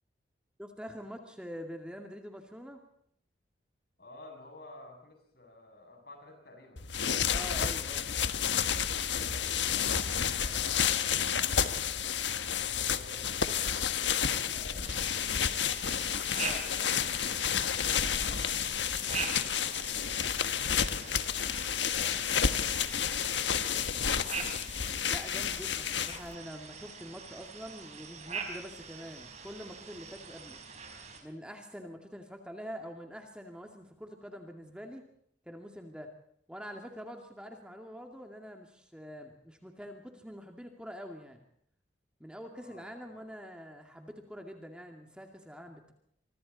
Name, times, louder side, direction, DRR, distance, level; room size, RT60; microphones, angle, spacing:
voice 1, 0.6-2.8 7.3-8.1 14.3-14.5 16.4-16.6 25.1-30.6 31.2-35.0 35.5-36.1 36.5-41.4 42.2-45.9, equal, 5° right, 3 dB, 2.4 m, -45 dB
voice 2, 4.0-6.9 8.7-13.7 14.0-15.8 16.3-21.4 21.8-23.0 23.3-24.1 42.6-43.2, left 2 dB, 55° left, 3 dB, 7.6 m, -53 dB
sound 1, 6.8-26.3, left 8 dB, 80° left, 1.4 m, -30 dB
sound 2, 14.8-31.2, right 5 dB, 40° right, 4.8 m, -44 dB
26.5 x 24.0 x 4.2 m, 0.68 s
head